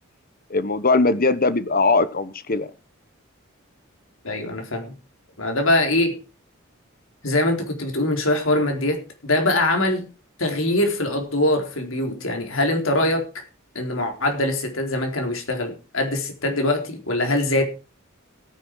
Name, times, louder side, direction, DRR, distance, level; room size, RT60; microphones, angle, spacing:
voice 1, 0.5-2.7, left 3 dB, 45° left, 1.2 m, -20 dB
voice 2, 4.2-4.9 5.4-6.2 7.2-10.1 10.4-13.4 13.7-17.6, left 1 dB, 75° left, 4.0 m, -23 dB
17.0 x 9.8 x 4.8 m
head